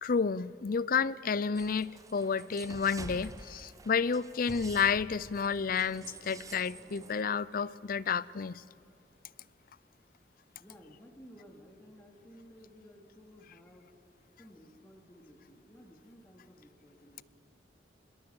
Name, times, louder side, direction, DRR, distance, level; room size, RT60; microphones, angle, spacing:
voice 1, 0.0-8.6, left 6 dB, 55° left, 0.5 m, -31 dB
sound 1, 1.6-7.2, right 3 dB, 20° right, 0.5 m, -48 dB
voice 2, 10.6-13.9 14.4-17.2, equal, 15° left, 2.6 m, -55 dB
25.0 x 21.5 x 7.2 m
head